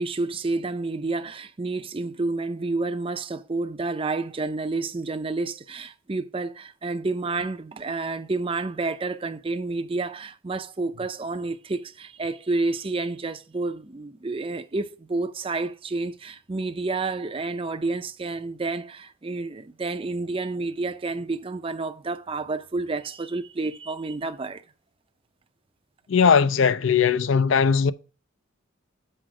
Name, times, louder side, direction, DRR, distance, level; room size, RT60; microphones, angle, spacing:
voice 1, 0.0-24.6, right 3 dB, 25° right, 0.5 m, -29 dB
voice 2, 26.1-27.9, left 6 dB, 60° left, 0.5 m, -19 dB
7.7 x 5.1 x 4.7 m
head